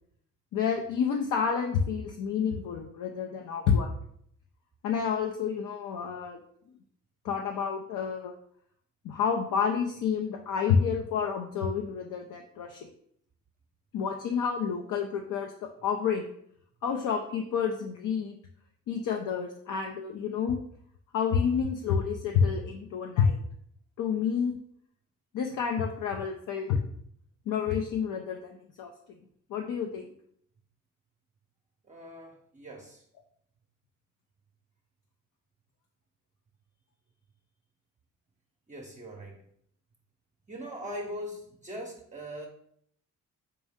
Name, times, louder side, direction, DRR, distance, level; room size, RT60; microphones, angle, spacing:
voice 1, 0.5-3.9 4.8-6.4 7.2-8.3 9.0-12.9 13.9-15.5 15.8-16.3 16.8-18.4 18.9-20.6 21.1-23.4 24.0-24.6 25.3-26.8 27.5-29.2 29.5-30.1, left 6 dB, 65° left, 3 dB, 0.5 m, -29 dB
voice 2, 31.9-33.0 38.7-39.5 40.5-42.5, equal, 20° right, 0 dB, 0.6 m, -41 dB
4.3 x 2.6 x 3.5 m, 0.66 s
cardioid pair, 85°, 33 cm